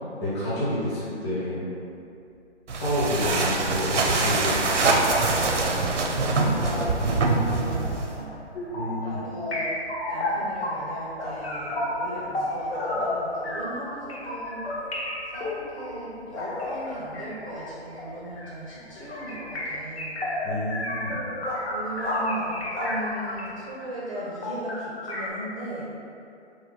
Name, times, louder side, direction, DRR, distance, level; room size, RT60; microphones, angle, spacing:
voice 1, 0.2-1.6 2.7-5.2 6.4-6.7 8.7-9.2 20.4-21.2, left 1 dB, 25° left, -11 dB, 1.0 m, -29 dB
sound 1, 2.7-8.2, right 3 dB, 85° right, 0.6 m, -24 dB
Bark, 4.3-23.6, left 1 dB, 90° left, 0.8 m, -40 dB
voice 2, 5.5-8.4 9.0-14.6 15.3-20.2 21.7-25.8, equal, 30° right, -9 dB, 0.4 m, -38 dB
sound 2, 8.5-9.0 9.4-11.1 11.4-23.5 23.8-23.9 24.1-25.3, left 1 dB, 60° left, 0.9 m, -32 dB
3.2 x 2.1 x 3.8 m, 2.6 s
figure-of-eight pair, 150°, 35 cm